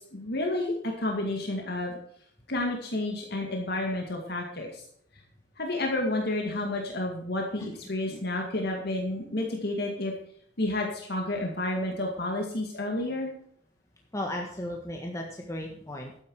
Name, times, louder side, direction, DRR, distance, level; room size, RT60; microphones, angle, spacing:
voice 1, 0.1-1.9 2.5-4.8 5.6-10.1 10.6-13.3, left 1 dB, 60° left, 0 dB, 2.2 m, -30 dB
voice 2, 14.1-16.2, left 1 dB, 15° left, 1 dB, 1.5 m, -35 dB
12.5 x 9.7 x 4.8 m, 0.66 s
head